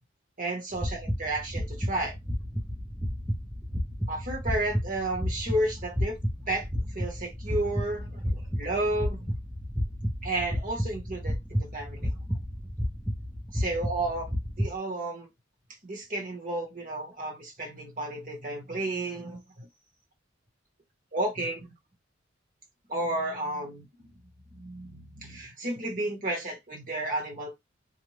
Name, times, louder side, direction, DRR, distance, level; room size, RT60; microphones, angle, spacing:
voice 1, 0.4-2.1 4.1-6.2 6.5-6.7 6.9-9.2 10.2-12.1 13.5-15.3 15.8-19.7 21.1-21.7 22.9-24.1 24.5-27.5, right 1 dB, 45° right, 1.2 m, -32 dB
sound 1, 0.7-14.7, equal, ahead, 0.5 m, -32 dB
2.6 x 2.3 x 3.1 m
head